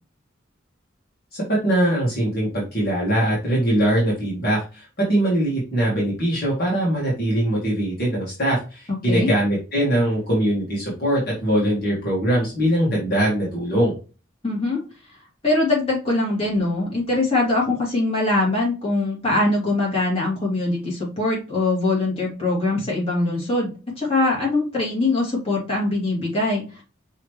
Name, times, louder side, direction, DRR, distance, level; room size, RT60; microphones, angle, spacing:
voice 1, 1.3-13.9, right 1 dB, 50° left, -5 dB, 1.9 m, -22 dB
voice 2, 8.9-9.3 14.4-14.8 15.4-23.7 24.0-26.8, left 2 dB, 30° left, -4 dB, 2.5 m, -22 dB
5.6 x 3.0 x 3.1 m, 0.33 s
head